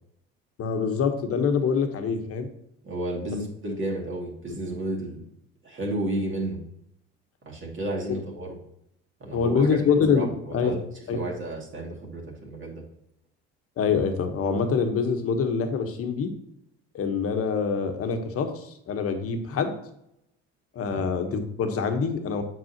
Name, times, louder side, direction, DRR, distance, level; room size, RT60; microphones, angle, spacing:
voice 1, 0.6-2.5 3.3-3.4 4.5-4.6 9.3-10.7 11.1-11.2 13.8-16.3 16.9-19.7 20.7-22.4, left 5 dB, 50° left, 6 dB, 1.2 m, -25 dB
voice 2, 2.8-5.2 5.6-6.6 7.5-8.6 9.2-9.8 10.1-10.8 11.1-12.8 20.9-21.0, right 1 dB, 40° right, -1 dB, 2.3 m, -32 dB
7.9 x 5.4 x 2.9 m, 0.77 s
hypercardioid pair, 65°, 30 cm